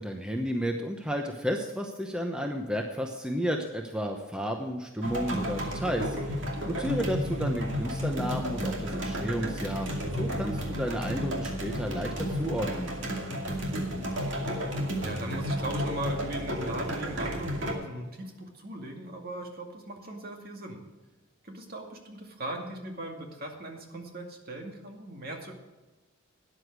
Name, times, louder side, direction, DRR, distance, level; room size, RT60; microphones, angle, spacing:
voice 1, 0.0-6.4 6.7-9.9 10.2-12.9, equal, 5° right, 3 dB, 0.9 m, -32 dB
sound 1, 5.0-17.7, equal, 65° right, 2.4 m, -32 dB
voice 2, 6.6-6.9 14.4-20.8 21.4-25.5, right 1 dB, 50° right, 2 dB, 2.3 m, -39 dB
13.0 x 9.9 x 4.7 m, 1.2 s
head